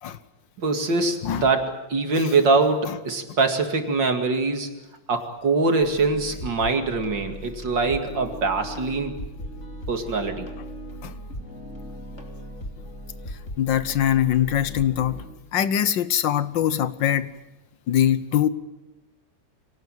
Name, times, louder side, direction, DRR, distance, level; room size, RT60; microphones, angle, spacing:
voice 1, 0.6-4.7 5.1-9.2 9.9-10.5, right 3 dB, 70° right, 5 dB, 3.1 m, -23 dB
sound 1, 5.8-15.3, equal, 35° left, 3.0 m, -38 dB
voice 2, 13.6-15.2 15.5-17.3 17.9-18.5, left 10 dB, 75° left, 14 dB, 1.7 m, -22 dB
25.0 x 18.0 x 9.1 m, 1.0 s
omnidirectional pair, 2.1 m